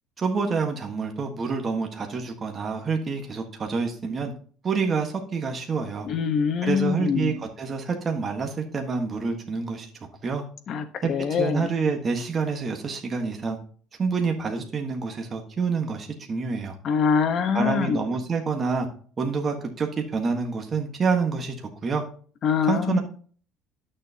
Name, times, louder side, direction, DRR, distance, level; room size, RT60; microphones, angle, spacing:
voice 1, 0.2-4.3 4.6-6.1 6.6-9.9 10.2-10.4 11.0-11.1 11.4-13.6 14.0-16.7 17.5-18.9 19.2-21.5 21.8-22.0 22.6-23.0, right 5 dB, 25° right, 3 dB, 1.4 m, -27 dB
voice 2, 6.0-7.4 10.7-11.7 16.8-18.0 22.4-23.0, left 6 dB, 40° left, 8 dB, 1.1 m, -24 dB
11.5 x 6.7 x 2.8 m, 0.44 s
cardioid pair, 145°, 0 cm